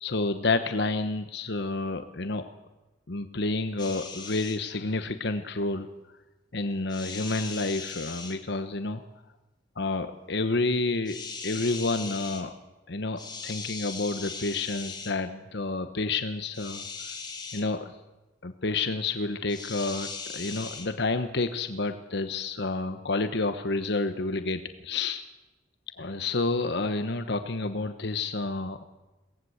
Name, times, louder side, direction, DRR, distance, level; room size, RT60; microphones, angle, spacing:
voice 1, 0.0-2.4 3.1-5.9 6.5-9.0 9.8-11.2 11.4-12.5 12.9-16.8 17.5-17.9 18.4-25.2 26.0-28.8, left 3 dB, 65° left, 9 dB, 1.1 m, -29 dB
sound 1, 3.8-4.6 6.9-8.4 11.0-12.4 13.2-15.1 16.5-17.6 19.5-20.9, left 4 dB, 25° left, 3.0 m, -39 dB
23.0 x 18.0 x 8.0 m, 1.1 s
head